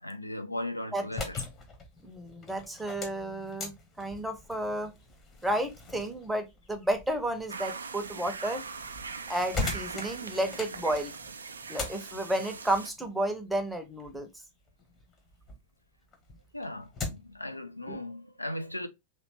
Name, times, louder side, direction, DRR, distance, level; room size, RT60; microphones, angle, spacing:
voice 1, 0.0-1.4 16.5-18.9, left 1 dB, 85° left, 0.4 m, -37 dB
sound 1, 1.1-15.6 16.0-17.4, left 3 dB, 30° left, 0.9 m, -41 dB
voice 2, 2.0-4.9 5.4-8.6 9.3-11.1 11.7-14.3 17.9-18.0, right 1 dB, 5° right, 0.7 m, -32 dB
sound 2, 7.5-12.9, right 5 dB, 75° right, 0.3 m, -41 dB
3.1 x 2.8 x 2.8 m
figure-of-eight pair, 90°, 0 cm